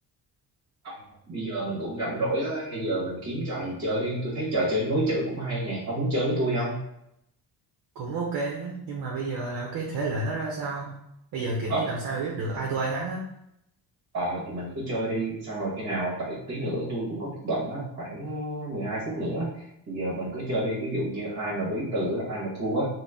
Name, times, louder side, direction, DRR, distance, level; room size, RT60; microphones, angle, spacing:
voice 1, 1.3-6.8 11.7-11.8 14.1-19.5 19.9-22.9, right 1 dB, 45° right, -6 dB, 1.1 m, -29 dB
voice 2, 8.0-10.9 11.3-13.3, right 3 dB, 65° right, -2 dB, 0.7 m, -30 dB
3.8 x 2.1 x 3.4 m, 0.80 s
wide cardioid pair, 175°, 38 cm